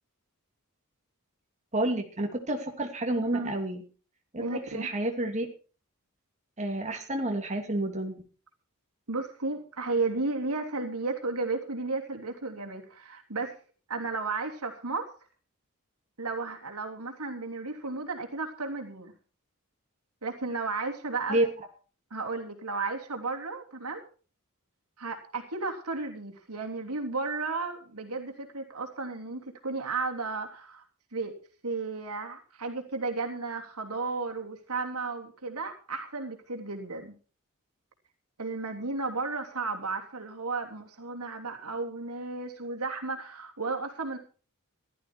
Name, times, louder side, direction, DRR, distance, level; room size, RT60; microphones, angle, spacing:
voice 1, 1.7-3.8 4.3-5.5 6.6-8.2 21.3-21.5, right 1 dB, 30° right, 3 dB, 2.8 m, -29 dB
voice 2, 4.4-4.9 9.1-13.6 13.9-15.1 16.2-19.1 20.2-21.4 22.1-24.0 25.0-30.8 31.1-31.3 31.6-37.2 38.4-44.2, right 3 dB, 85° right, 3 dB, 3.1 m, -33 dB
16.0 x 12.5 x 4.5 m, 0.38 s
head